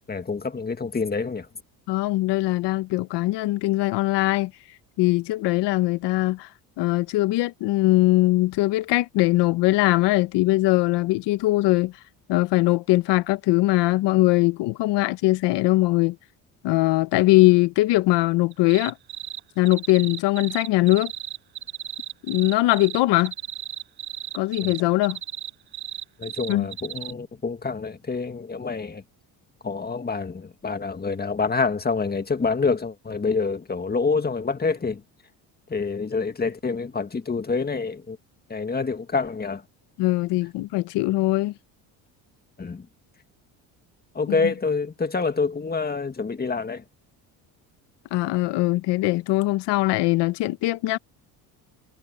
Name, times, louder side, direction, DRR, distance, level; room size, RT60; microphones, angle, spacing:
voice 1, 0.1-1.5 24.6-24.7 26.2-29.0 29.6-35.0 35.7-38.2 38.5-39.6 42.6-42.8 44.2-46.8, left 4 dB, 20° left, 2.0 m, -27 dB
voice 2, 1.9-4.5 5.0-6.5 6.8-11.9 12.3-16.2 16.6-19.0 19.6-21.1 22.2-23.3 24.3-25.2 26.5-26.7 40.0-41.5 44.3-44.5 48.1-51.0, left 19 dB, 75° left, 1.4 m, -21 dB
sound 1, 18.5-19.4 19.7-27.1, right 11 dB, 60° right, 6.7 m, -35 dB
supercardioid pair, 90°, 42 cm